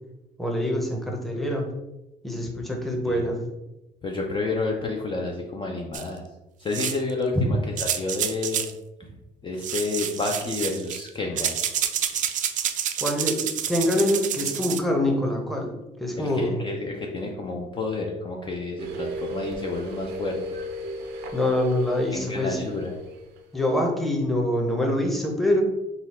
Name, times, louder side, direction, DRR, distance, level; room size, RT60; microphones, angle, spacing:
voice 1, 0.4-1.7 2.2-3.4 13.0-15.7 16.0-16.6 21.3-22.7 23.5-25.6, left 1 dB, ahead, 0 dB, 0.8 m, -25 dB
voice 2, 4.0-6.2 6.6-8.7 9.4-11.5 16.2-20.4 22.1-23.0, left 3 dB, 30° left, 0 dB, 0.5 m, -30 dB
sound 1, 5.9-6.0 6.7-7.1 7.8-8.7 9.6-11.1 11.4-14.8, right 9 dB, 50° right, 0.4 m, -28 dB
sound 2, 18.8-23.7, equal, 90° right, 0.6 m, -35 dB
4.0 x 2.4 x 4.2 m, 0.97 s
cardioid pair, 110°, 17 cm